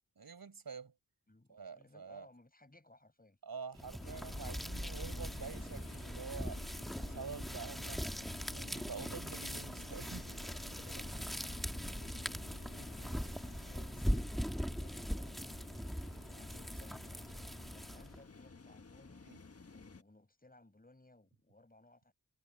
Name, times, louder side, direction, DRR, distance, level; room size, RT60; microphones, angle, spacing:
voice 1, 0.2-0.9 1.5-2.3 3.4-6.6 7.0-8.0 8.5-10.3 12.8-12.9 19.3-19.4, right 5 dB, 70° right, 5.5 m, -47 dB
voice 2, 1.3-3.4 10.6-17.4 17.7-19.2 19.6-22.1, left 2 dB, 25° left, 7.1 m, -63 dB
sound 1, 3.7-18.2, equal, ahead, 1.8 m, -41 dB
sound 2, 4.0-20.0, left 4 dB, 40° left, 1.4 m, -54 dB
cardioid pair, 50°, 37 cm